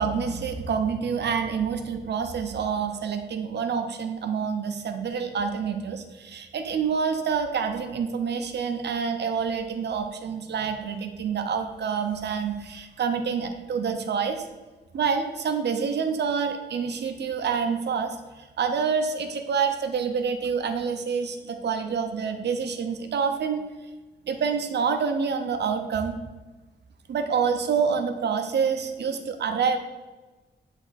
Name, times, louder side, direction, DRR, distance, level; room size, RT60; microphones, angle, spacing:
voice 1, 0.0-14.5 14.9-23.6 24.2-26.2 27.1-29.8, right 6 dB, 75° right, 6 dB, 0.8 m, -27 dB
10.0 x 3.5 x 4.2 m, 1.2 s
wide cardioid pair, 135°, 18 cm